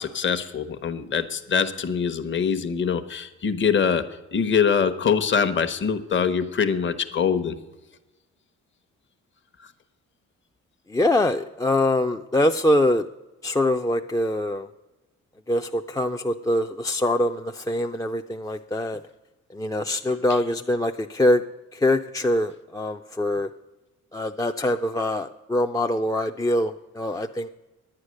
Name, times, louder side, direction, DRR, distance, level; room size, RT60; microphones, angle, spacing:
voice 1, 0.0-7.6, left 6 dB, 40° left, 9 dB, 1.0 m, -24 dB
voice 2, 10.9-13.1 13.4-14.7 15.5-19.0 19.5-21.4 21.7-23.5 24.1-27.5, left 1 dB, 10° left, 5 dB, 0.4 m, -24 dB
9.8 x 9.6 x 6.4 m, 1.1 s
cardioid pair, 90°, 30 cm